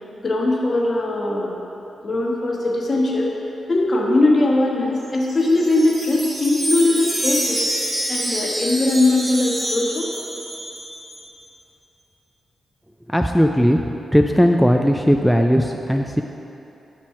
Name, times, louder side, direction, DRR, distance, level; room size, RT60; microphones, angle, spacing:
voice 1, 0.2-1.5 2.0-3.3 3.7-7.6 8.1-10.1, left 2 dB, 45° left, -2 dB, 1.2 m, -20 dB
Wind chime, 5.0-11.2, right 1 dB, 30° right, 1.3 m, -27 dB
voice 2, 13.1-16.2, equal, ahead, 3 dB, 0.3 m, -17 dB
6.1 x 4.3 x 5.7 m, 3.0 s
cardioid pair, 70°, 0 cm